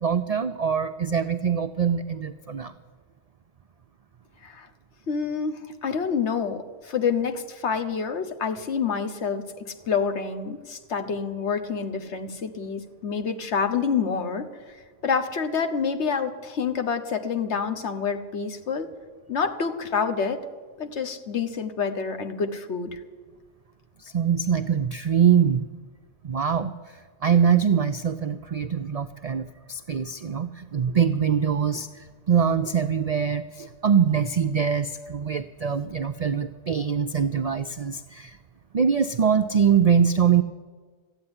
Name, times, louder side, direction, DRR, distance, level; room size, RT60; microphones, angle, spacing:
voice 1, 0.0-2.7 24.0-25.7 26.2-26.7 27.2-38.4 38.7-40.4, right 7 dB, 65° right, 10 dB, 0.3 m, -23 dB
voice 2, 5.1-14.5 15.0-18.9 19.3-20.4 20.8-23.0, left 6 dB, 70° left, 7 dB, 1.3 m, -27 dB
13.5 x 8.8 x 9.7 m, 1.5 s
omnidirectional pair, 1.2 m